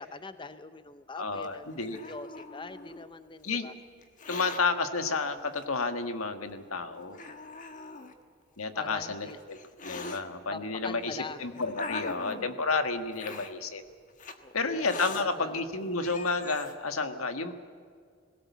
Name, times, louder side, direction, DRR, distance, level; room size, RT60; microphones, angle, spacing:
voice 1, 0.0-1.7 2.0-3.7 8.7-9.4 10.5-11.6 14.4-14.9 15.1-15.6, left 3 dB, 25° left, 11 dB, 0.6 m, -43 dB
voice 2, 1.2-2.0 3.4-3.7 4.3-7.2 8.6-9.6 9.8-13.8 14.5-17.5, left 4 dB, 85° left, 8 dB, 1.6 m, -31 dB
Hiss, 1.4-3.1 4.0-4.6 5.6-5.7 6.5-6.6 7.1-8.1 9.0-10.2 11.0-12.6 13.1-13.5 14.2-14.4 14.8-15.2 15.7-15.8 16.0-16.7, left 3 dB, 40° left, 1.4 m, -41 dB
21.0 x 18.0 x 8.4 m, 2.1 s
head